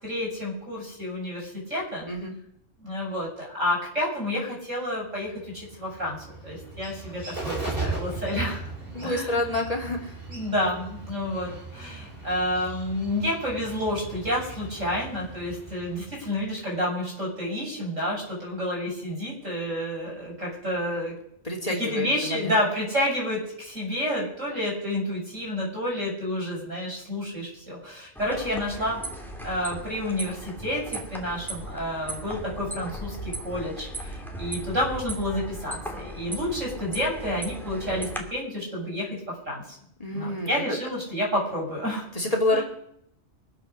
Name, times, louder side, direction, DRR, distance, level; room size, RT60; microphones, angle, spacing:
voice 1, 0.0-2.1 2.8-6.2 6.4-8.6 9.0-9.4 10.3-21.1 21.8-29.0 29.4-39.2 39.5-39.6 40.1-42.1 42.5-42.6, left 1 dB, 75° right, -3 dB, 7.1 m, -29 dB
Bird, 5.3-16.8, right 3 dB, 45° right, 5.4 m, -38 dB
voice 2, 8.9-10.2 21.4-22.6 40.0-40.5 42.1-42.6, left 1 dB, 30° left, 0 dB, 3.0 m, -27 dB
sound 1, 28.2-38.2, right 1 dB, ahead, 2.3 m, -37 dB
24.0 x 8.2 x 6.7 m, 0.72 s
omnidirectional pair, 1.3 m